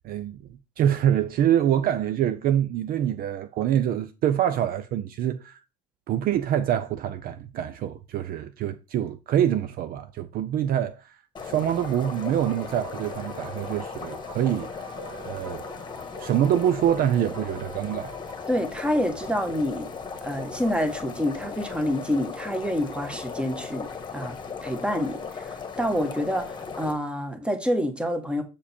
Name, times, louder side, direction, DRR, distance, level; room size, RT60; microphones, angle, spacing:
voice 1, 0.0-0.4 0.8-5.6 6.1-14.7 15.3-15.6 16.2-18.1, right 10 dB, 45° right, 0.6 m, -25 dB
sound 1, 11.4-26.9, left 5 dB, 20° left, 1.4 m, -37 dB
sound 2, 11.8-18.5, right 3 dB, 80° right, 1.7 m, -45 dB
voice 2, 18.5-19.9 20.2-28.4, equal, 5° right, 1.2 m, -28 dB
7.0 x 4.9 x 4.3 m
cardioid pair, 135°, 21 cm